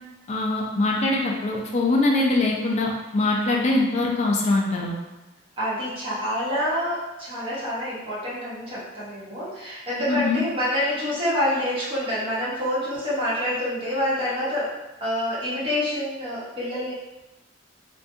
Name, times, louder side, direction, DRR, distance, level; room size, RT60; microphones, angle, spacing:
voice 1, 0.3-5.0 10.1-10.4, left 2 dB, 35° left, -1 dB, 0.4 m, -23 dB
voice 2, 5.6-14.7 15.0-16.9, left 1 dB, 30° right, -9 dB, 0.9 m, -27 dB
2.5 x 2.2 x 2.6 m, 1.1 s
head